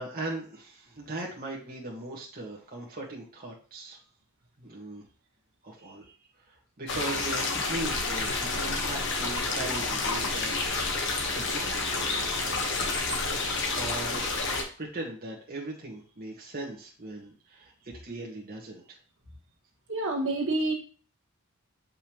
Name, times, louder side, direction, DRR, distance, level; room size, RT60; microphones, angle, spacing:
voice 1, 0.0-4.0 4.6-5.0 5.6-11.0 11.3-12.3 13.3-14.4 14.8-19.0, right 2 dB, 40° right, -2 dB, 1.4 m, -39 dB
sound 1, 6.9-14.6, left 3 dB, 55° left, 1.2 m, -29 dB
voice 2, 19.9-20.7, right 2 dB, 60° right, 0 dB, 1.5 m, -27 dB
6.9 x 5.4 x 3.0 m, 0.39 s
head